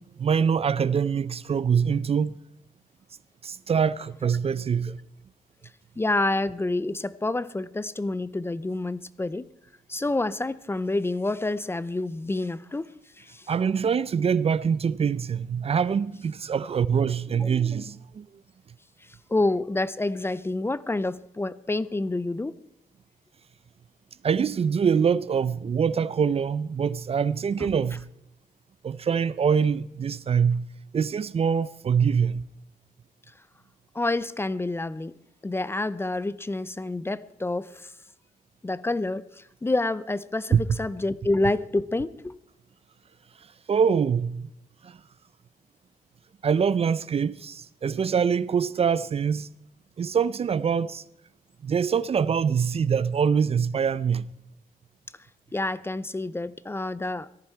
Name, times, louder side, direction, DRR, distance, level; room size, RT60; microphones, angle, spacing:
voice 1, 0.0-2.4 3.4-5.0 13.5-18.3 24.2-28.1 28.8-30.7 30.9-32.4 40.5-40.6 43.7-44.5 44.8-45.0 46.4-49.5 50.0-51.0 51.6-54.3, right 6 dB, 45° right, 0.5 m, -24 dB
voice 2, 6.0-9.5 9.9-12.9 13.2-13.5 17.4-17.5 19.0-22.6 27.6-27.7 33.9-35.1 35.4-37.9 38.6-42.4 55.5-57.3, left 2 dB, 15° left, 0.5 m, -28 dB
18.5 x 14.0 x 4.5 m
cardioid pair, 105°, 15 cm